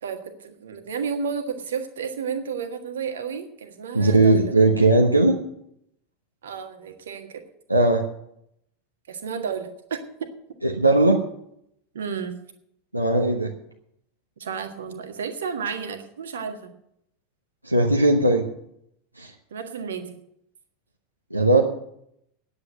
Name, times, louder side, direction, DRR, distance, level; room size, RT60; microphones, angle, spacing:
voice 1, 0.0-4.5 6.4-7.4 9.1-10.3 11.9-12.3 14.4-16.7 19.5-20.2, right 6 dB, 65° right, 6 dB, 1.6 m, -32 dB
voice 2, 3.9-5.4 7.7-8.0 10.6-11.2 12.9-13.5 17.6-18.5 19.2-19.3 21.3-21.6, right 2 dB, 90° right, 0 dB, 1.0 m, -18 dB
9.7 x 8.5 x 9.5 m, 0.74 s
figure-of-eight pair, 85°, 0 cm